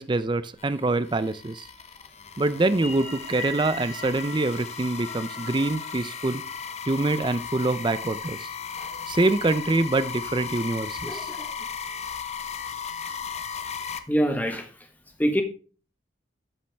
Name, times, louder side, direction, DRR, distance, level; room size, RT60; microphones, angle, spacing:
voice 1, 0.0-1.7 2.4-6.4 6.9-8.5 9.1-11.3, right 2 dB, 25° right, 13 dB, 0.5 m, -25 dB
sound 1, 0.6-14.0, left 6 dB, 35° left, 0.7 m, -36 dB
sound 2, 2.6-7.2, equal, 55° left, 2.9 m, -40 dB
voice 2, 11.0-11.5 14.1-14.6 15.2-15.4, equal, 10° left, 5 dB, 1.3 m, -25 dB
13.0 x 5.5 x 3.4 m, 0.37 s
head